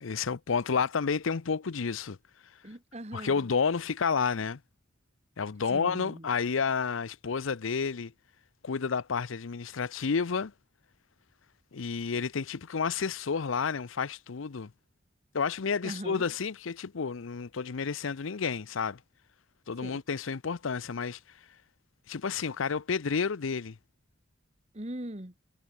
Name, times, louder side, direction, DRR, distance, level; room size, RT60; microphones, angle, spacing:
voice 1, 0.0-2.2 3.1-4.6 5.4-8.1 8.6-10.5 11.7-14.7 15.3-19.0 19.7-21.2 22.1-23.8, left 5 dB, 90° left, 0.6 m, -30 dB
voice 2, 2.6-3.4 5.7-6.3 15.8-16.2 19.8-20.0 24.7-25.3, right 1 dB, 35° right, 2.0 m, -40 dB
head